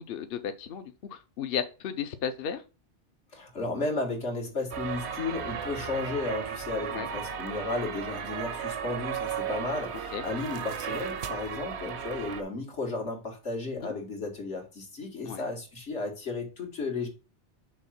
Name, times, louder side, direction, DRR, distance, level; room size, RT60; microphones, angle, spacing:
voice 1, 0.1-2.6 6.9-7.1 10.1-10.2 13.8-13.9 15.2-15.5, left 7 dB, 60° left, 0.8 m, -34 dB
voice 2, 3.3-17.1, left 3 dB, 90° left, 2.3 m, -34 dB
sound 1, 4.7-12.4, right 8 dB, 75° right, 1.1 m, -35 dB
6.3 x 3.8 x 5.9 m
omnidirectional pair, 1.1 m